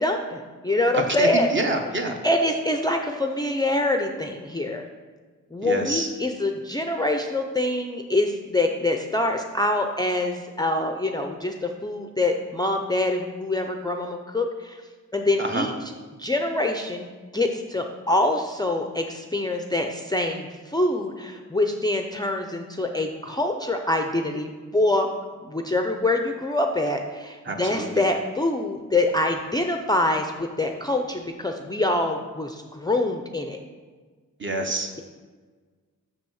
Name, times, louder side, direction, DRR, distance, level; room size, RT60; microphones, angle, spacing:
voice 1, 0.0-1.5 2.2-4.8 5.5-14.8 15.1-15.7 16.2-25.1 25.4-33.6, left 2 dB, 10° left, 4 dB, 0.5 m, -25 dB
voice 2, 0.9-2.1 5.6-6.1 15.4-15.7 27.4-28.0 34.4-35.0, right 1 dB, 35° right, 3 dB, 1.0 m, -27 dB
7.0 x 6.4 x 6.3 m, 1.4 s
wide cardioid pair, 160°, 33 cm